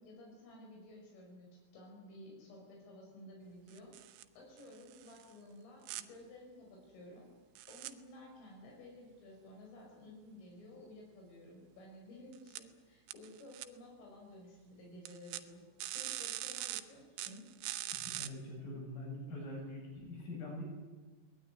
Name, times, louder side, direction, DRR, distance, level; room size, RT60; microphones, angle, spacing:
voice 1, 0.0-3.9 4.4-7.3 7.7-15.6 15.9-17.4, left 1 dB, 80° left, -1 dB, 8.1 m, -54 dB
sound 1, 3.7-4.2 4.6-5.2 5.9-6.0 7.6-7.9 12.3-12.6 13.1-13.7 15.1-15.4 15.8-16.8 17.2-18.3, right 14 dB, 75° right, 3.0 m, -42 dB
voice 2, 17.9-20.6, left 1 dB, 45° left, 0 dB, 8.6 m, -44 dB
22.0 x 19.5 x 9.9 m, 1.3 s
omnidirectional pair, 5.7 m